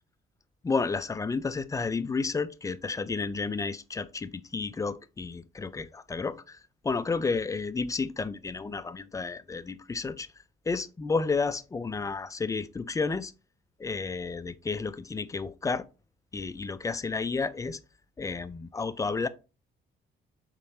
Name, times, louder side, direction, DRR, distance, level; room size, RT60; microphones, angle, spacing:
voice 1, 0.6-6.6 6.8-10.3 10.7-13.3 13.8-15.8 16.3-17.8 18.2-19.3, left 4 dB, 15° left, 0.3 m, -31 dB
3.9 x 3.6 x 2.7 m
cardioid pair, 90°, 20 cm